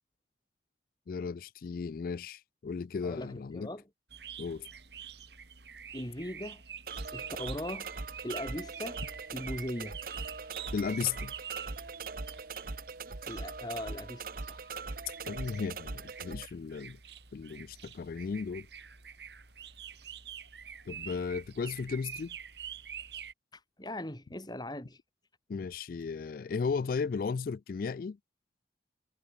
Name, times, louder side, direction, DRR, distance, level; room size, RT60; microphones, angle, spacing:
voice 1, 1.1-3.7 4.4-4.7 10.7-11.3 15.3-17.0 17.3-18.7 20.9-22.4 25.5-28.2, left 5 dB, 50° left, 0.3 m, -35 dB
voice 2, 3.0-3.8 5.9-6.6 7.1-7.9 8.2-9.0 9.3-10.0 13.3-14.7 23.5-25.0, left 1 dB, 25° left, 3.4 m, -39 dB
sound 1, 4.1-23.3, right 8 dB, 70° right, 3.6 m, -47 dB
sound 2, 6.9-16.5, right 4 dB, 55° right, 1.1 m, -41 dB
head